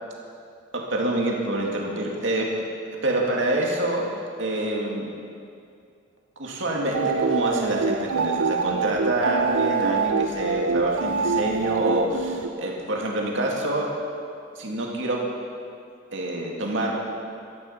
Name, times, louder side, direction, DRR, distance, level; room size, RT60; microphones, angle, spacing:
voice 1, 0.7-2.5 3.0-4.1 4.4-5.1 6.4-13.9 14.6-15.2 16.1-16.9, right 1 dB, 65° right, -2 dB, 2.3 m, -26 dB
sound 1, 6.9-12.5, right 5 dB, 90° right, 0.6 m, -25 dB
15.5 x 13.0 x 5.7 m, 2.4 s
head